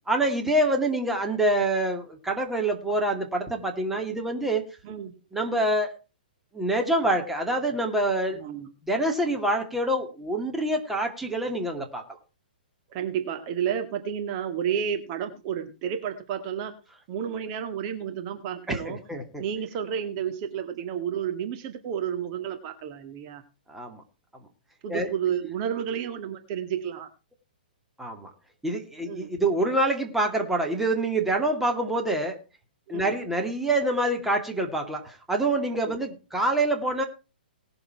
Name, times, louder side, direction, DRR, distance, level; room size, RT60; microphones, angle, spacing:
voice 1, 0.1-4.7 5.3-5.9 6.5-8.4 8.8-12.0 18.7-19.4 23.7-24.0 24.9-25.1 28.0-28.3 28.6-32.4 32.9-37.0, right 1 dB, 5° right, 2 dB, 2.3 m, -26 dB
voice 2, 8.3-8.7 12.9-16.8 17.1-19.0 19.4-23.4 24.8-27.1 29.1-29.3 32.9-33.1 35.8-36.0, right 8 dB, 40° right, 6 dB, 1.8 m, -31 dB
19.0 x 6.8 x 4.5 m, 0.32 s
hypercardioid pair, 130°, 5 cm